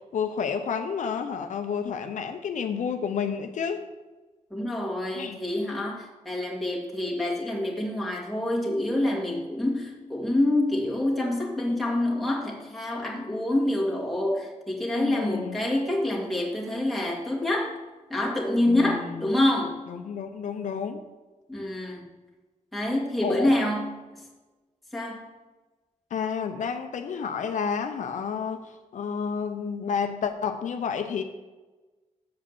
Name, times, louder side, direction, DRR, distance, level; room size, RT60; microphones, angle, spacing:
voice 1, 0.1-3.9 5.1-5.4 14.9-15.6 18.7-19.3 19.9-21.0 23.2-23.6 26.1-31.2, left 6 dB, 75° left, 6 dB, 0.6 m, -30 dB
voice 2, 4.5-17.7 18.1-19.8 21.5-22.1 22.7-24.0 24.9-25.2, left 1 dB, ahead, -3 dB, 2.0 m, -27 dB
7.3 x 5.0 x 7.1 m, 1.2 s
wide cardioid pair, 115°, 13 cm